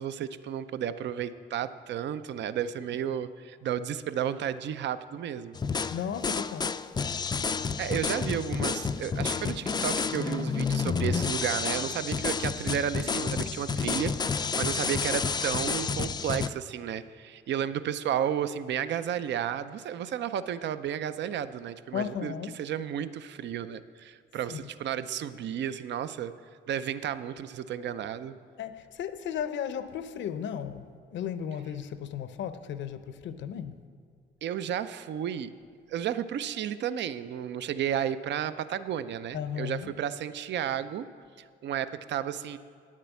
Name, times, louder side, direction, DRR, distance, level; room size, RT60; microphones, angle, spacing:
voice 1, 0.0-5.9 7.8-26.3 26.7-28.3 34.4-35.5 35.9-41.1 41.6-42.6, right 9 dB, 65° right, 13 dB, 0.5 m, -32 dB
sound 1, 5.5-16.5, left 5 dB, 20° left, 0.4 m, -30 dB
voice 2, 5.9-6.7 21.9-22.6 24.5-24.6 28.6-33.8 39.3-39.9, left 8 dB, 70° left, 11 dB, 0.7 m, -35 dB
9.4 x 7.4 x 8.1 m, 2.1 s
cardioid pair, 90°, 20 cm